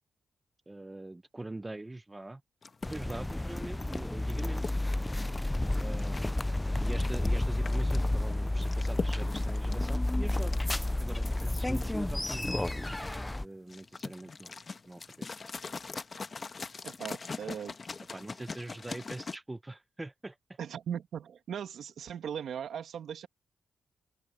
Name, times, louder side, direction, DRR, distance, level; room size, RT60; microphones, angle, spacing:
voice 1, 0.7-2.4 2.9-4.6 5.8-6.3 6.8-10.6 11.0-14.6 14.8-15.3 18.1-20.4, right 2 dB, 15° right, 1.0 m, -43 dB
sound 1, 2.6-19.4, left 4 dB, 40° left, 1.4 m, -43 dB
sound 2, 2.8-13.4, left 1 dB, 15° left, 0.5 m, -31 dB
voice 2, 16.8-17.7 20.6-23.3, right 8 dB, 80° right, 1.6 m, -38 dB
open air
cardioid pair, 85°, 0 cm